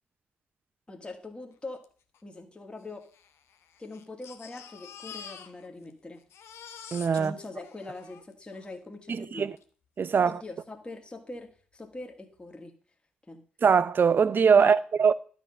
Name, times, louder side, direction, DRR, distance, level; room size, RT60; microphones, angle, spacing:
voice 1, 0.9-1.8 2.2-3.0 3.8-6.2 7.1-9.5 10.2-12.7 13.3-13.4 14.6-14.8, left 2 dB, 20° left, 2.1 m, -42 dB
Crying sobbing, 1.8-1.9 2.1-2.2 3.0-5.9 6.2-8.7 9.6-9.7 10.0-10.1, left 7 dB, 60° left, 1.0 m, -47 dB
voice 2, 6.9-7.3 9.1-9.5 10.0-10.4 13.6-15.1, right 6 dB, 45° right, 0.6 m, -22 dB
12.0 x 6.1 x 5.4 m
figure-of-eight pair, 40°, 5 cm